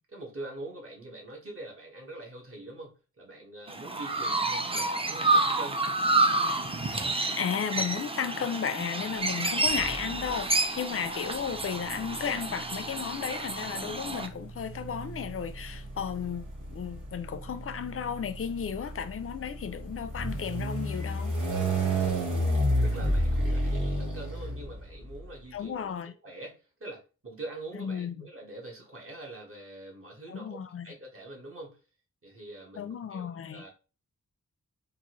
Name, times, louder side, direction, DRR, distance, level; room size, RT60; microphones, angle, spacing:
voice 1, 0.1-2.9 3.2-5.8 22.8-31.8 32.2-33.7, right 2 dB, 45° right, 1.5 m, -44 dB
Chirp tweet, 3.7-14.3, right 2 dB, 20° right, 0.5 m, -29 dB
voice 2, 7.4-21.3 25.5-26.1 27.7-28.3 30.3-30.9 32.7-33.6, left 7 dB, 45° left, 0.5 m, -34 dB
sound 1, 9.7-10.4 11.4-25.1, right 1 dB, 85° right, 2.0 m, -31 dB
3.9 x 2.6 x 3.0 m
wide cardioid pair, 65°, 31 cm